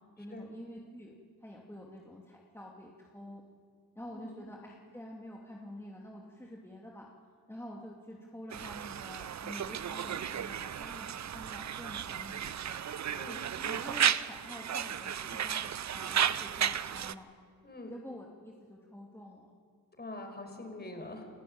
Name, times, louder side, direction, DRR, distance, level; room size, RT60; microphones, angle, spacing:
voice 1, 0.2-1.1 1.4-3.4 3.9-7.1 7.5-12.8 13.7-17.3 17.9-19.5, left 1 dB, 5° left, -2 dB, 2.9 m, -48 dB
Conversation, 8.5-17.1, right 9 dB, 45° right, 0.8 m, -34 dB
voice 2, 13.1-13.5 17.6-17.9 20.0-21.3, left 2 dB, 25° left, 4 dB, 5.4 m, -44 dB
28.5 x 14.5 x 8.9 m, 2.1 s
cardioid pair, 80°, 37 cm